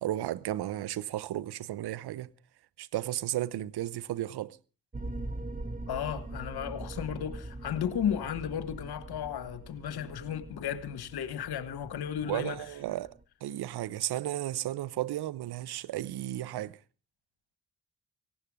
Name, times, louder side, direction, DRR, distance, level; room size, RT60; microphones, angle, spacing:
voice 1, 0.0-2.3 2.8-4.6 12.3-13.1 13.4-16.8, right 13 dB, 70° right, 0.9 m, -34 dB
sound 1, 4.9-13.2, right 2 dB, 20° right, 1.5 m, -42 dB
voice 2, 5.9-12.6, left 9 dB, 65° left, 1.5 m, -34 dB
18.5 x 16.0 x 3.7 m
hypercardioid pair, 45°, 41 cm